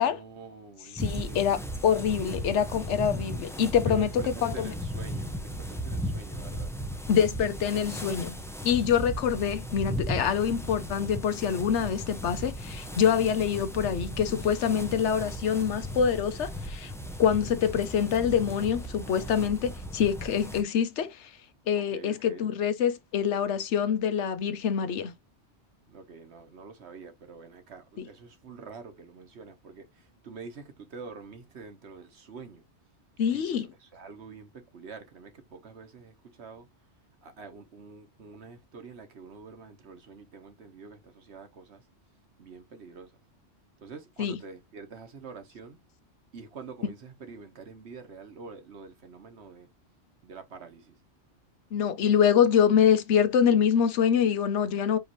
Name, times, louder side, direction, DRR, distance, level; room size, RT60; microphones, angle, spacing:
voice 1, 0.0-1.6 3.8-6.7 21.7-22.5 25.9-32.6 33.3-36.7 37.2-41.9 42.4-43.2 43.8-45.8 46.3-49.7 50.2-51.0, right 5 dB, 65° right, 1.4 m, -46 dB
voice 2, 1.0-4.1 4.4-4.7 7.1-8.4 8.6-16.9 17.2-21.3 21.7-25.1 28.0-28.1 33.2-33.7 44.2-44.4 51.7-55.0, left 8 dB, 75° left, 1.0 m, -25 dB
sound 1, 1.0-20.6, equal, 5° left, 0.5 m, -36 dB
5.1 x 2.7 x 3.1 m
omnidirectional pair, 1.2 m